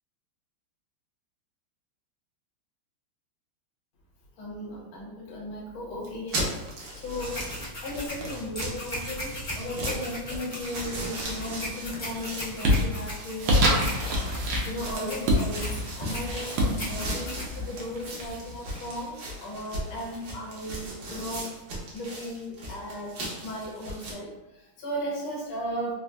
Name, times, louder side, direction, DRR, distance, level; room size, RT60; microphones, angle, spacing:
voice 1, 4.4-6.6 6.9-7.5 7.8-13.7 14.6-21.5 21.9-25.9, left 1 dB, 75° left, -3 dB, 1.7 m, -36 dB
sound 1, 6.0-24.1, right 1 dB, 65° right, 1.3 m, -38 dB
sound 2, 7.2-18.3, equal, 40° left, 0.7 m, -38 dB
sound 3, 11.4-11.8 12.2-18.8, equal, 80° right, 1.5 m, -27 dB
4.0 x 2.4 x 2.2 m, 1.0 s
omnidirectional pair, 2.3 m